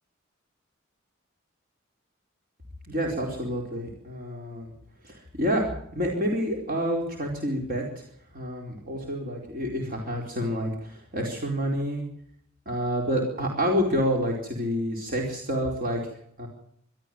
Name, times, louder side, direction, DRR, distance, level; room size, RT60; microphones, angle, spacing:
voice 1, 2.9-4.7 5.0-8.0 8.3-12.0 12.7-16.0 16.4-16.5, equal, 45° right, 0 dB, 4.5 m, -28 dB
25.5 x 13.5 x 7.8 m, 0.69 s
head